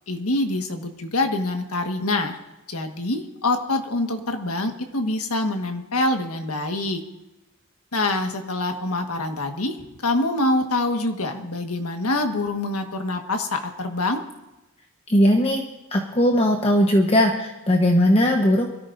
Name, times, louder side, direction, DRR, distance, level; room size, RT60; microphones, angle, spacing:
voice 1, 0.1-2.4 2.7-7.0 7.9-9.8 10.0-14.2, left 2 dB, 85° left, 5 dB, 1.6 m, -25 dB
voice 2, 15.1-15.6 15.9-18.7, equal, 25° left, 2 dB, 1.1 m, -18 dB
23.0 x 14.0 x 2.6 m, 0.98 s
head